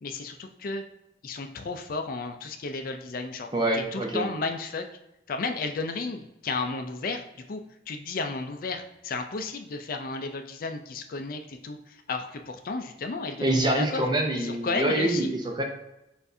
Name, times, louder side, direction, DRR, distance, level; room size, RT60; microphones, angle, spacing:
voice 1, 0.0-0.8 1.2-3.5 3.7-4.8 5.3-7.2 7.5-7.6 7.9-14.0 14.3-15.3, left 3 dB, 50° left, 5 dB, 0.4 m, -33 dB
voice 2, 3.5-4.2 13.4-15.6, right 1 dB, 25° right, 2 dB, 0.7 m, -25 dB
6.8 x 2.6 x 2.6 m, 0.89 s
head